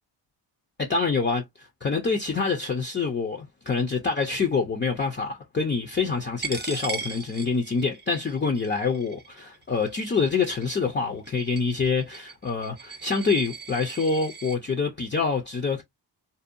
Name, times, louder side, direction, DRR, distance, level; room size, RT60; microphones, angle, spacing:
voice 1, 0.8-15.8, left 4 dB, 25° left, 0.4 m, -26 dB
Coin (dropping), 6.4-14.6, right 5 dB, 25° right, 0.5 m, -39 dB
2.6 x 2.1 x 2.5 m
cardioid pair, 95°, 44 cm